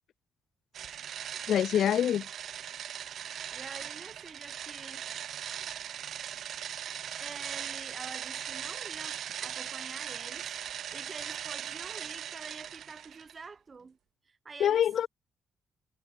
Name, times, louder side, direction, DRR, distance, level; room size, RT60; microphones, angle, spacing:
sound 1, 0.7-13.4, right 9 dB, 65° right, 0.3 m, -39 dB
voice 1, 1.5-2.3 14.6-15.1, left 10 dB, 70° left, 0.3 m, -25 dB
voice 2, 3.5-5.1 6.8-10.5 10.9-14.0 14.3-14.9, right 4 dB, 30° right, 7.2 m, -47 dB
cardioid pair, 120°, 0 cm